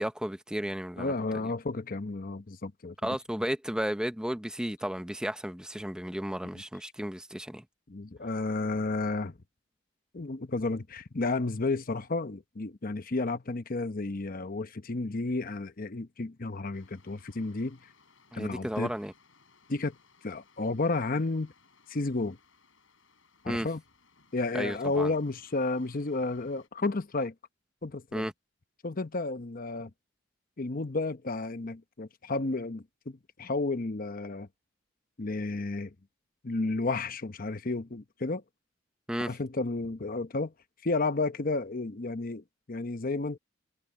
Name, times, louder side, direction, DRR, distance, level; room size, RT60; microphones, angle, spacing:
voice 1, 0.0-1.1 3.0-7.6 18.3-19.1 23.5-23.7 24.5-25.1 28.1-28.3 39.1-39.3, equal, 5° right, 0.8 m, -33 dB
voice 2, 1.0-3.0 6.5-6.6 7.9-9.4 10.1-17.9 18.3-18.9 19.7-20.0 20.2-21.5 21.9-22.4 23.4-23.8 24.3-27.3 27.8-28.3 28.8-29.9 30.6-34.5 35.2-35.9 36.4-38.4 39.2-40.5 40.8-43.4, left 3 dB, 45° left, 0.9 m, -32 dB
sound 1, 16.7-26.7, left 4 dB, 75° left, 7.9 m, -63 dB
head